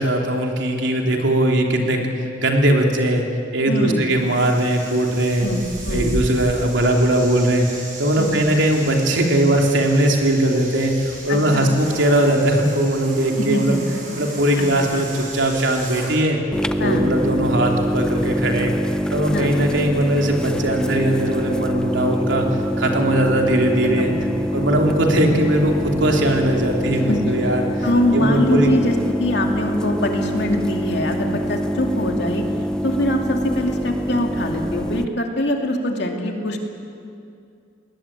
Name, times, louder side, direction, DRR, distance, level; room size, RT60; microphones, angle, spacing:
voice 1, 0.0-3.2 3.5-5.5 5.9-13.8 14.2-16.4 16.8-18.7 19.1-22.5 22.8-24.1 24.5-27.9 28.1-28.7, right 1 dB, 75° right, 1 dB, 3.3 m, -19 dB
voice 2, 3.7-4.0 5.4-6.2 8.2-8.4 11.3-11.7 13.4-13.8 14.6-15.0 16.8-17.1 19.3-19.6 24.0-24.5 27.1-27.2 27.8-32.4 32.8-36.6, left 1 dB, 60° left, 2 dB, 2.6 m, -23 dB
sound 1, 4.1-16.2, right 1 dB, 45° right, 7.8 m, -34 dB
sound 2, 16.5-35.1, equal, 5° left, 0.5 m, -25 dB
21.0 x 19.0 x 9.0 m, 2.5 s
head